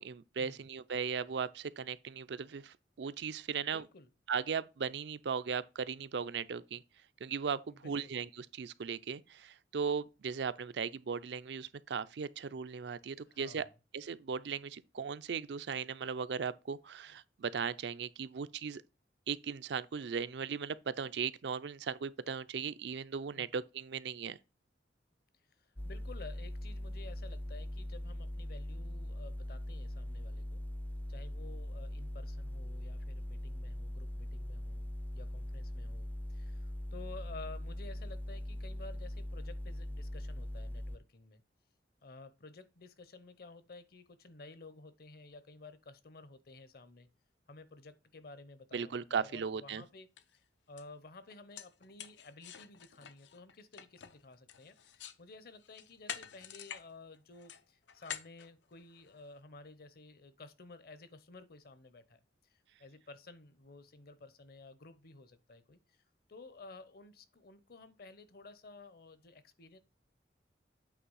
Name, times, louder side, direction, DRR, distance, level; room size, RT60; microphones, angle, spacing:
voice 1, 0.0-3.8 4.3-6.8 7.2-13.6 13.9-18.8 19.3-24.4 48.7-49.8, right 6 dB, 70° right, 0.4 m, -37 dB
voice 2, 3.5-4.1 7.7-8.1 13.2-13.7 23.3-23.5 25.6-30.6 31.1-41.4 42.0-47.1 47.5-50.1 50.3-66.0 66.3-69.8, left 3 dB, 55° left, 0.9 m, -53 dB
sound 1, 25.8-41.0, left 1 dB, 10° left, 0.4 m, -41 dB
sound 2, 49.7-49.8 50.2-50.4 50.8-50.9 51.3-55.2 55.6-56.9 57.1-59.3, left 9 dB, 85° left, 0.7 m, -47 dB
8.5 x 3.2 x 5.5 m
head